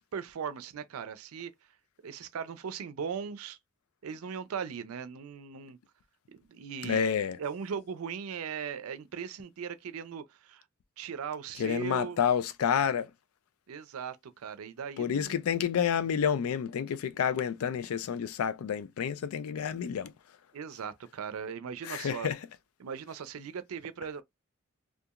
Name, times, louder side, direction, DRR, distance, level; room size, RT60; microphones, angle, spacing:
voice 1, 0.1-1.5 2.0-3.6 4.0-5.8 6.3-7.0 7.4-10.6 11.0-12.2 13.7-15.3 20.5-22.3 22.8-24.2, right 6 dB, 85° right, 0.4 m, -38 dB
voice 2, 6.8-7.4 11.6-13.1 15.0-20.1 21.8-22.4, left 7 dB, 85° left, 0.4 m, -29 dB
2.8 x 2.3 x 2.3 m
head